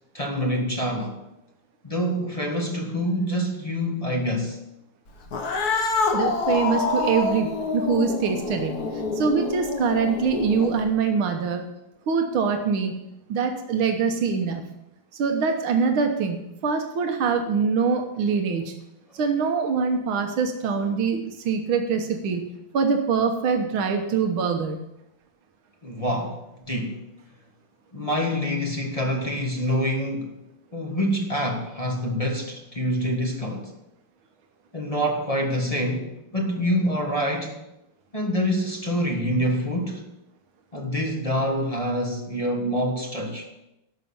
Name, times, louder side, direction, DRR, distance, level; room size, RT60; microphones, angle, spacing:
voice 1, 0.1-1.2 1.8-4.6 25.8-27.0 27.9-30.4 30.7-33.7 34.7-37.6 38.1-40.0 40.7-43.5, equal, 20° left, 1.3 m, -26 dB
Cat, 5.2-10.9, left 3 dB, 55° left, 1.6 m, -27 dB
voice 2, 6.1-8.7 9.1-11.7 12.1-13.0 13.3-14.6 15.1-18.7 19.1-22.5 22.7-24.8, right 5 dB, 85° right, 2.0 m, -24 dB
11.5 x 6.4 x 7.1 m
omnidirectional pair, 2.2 m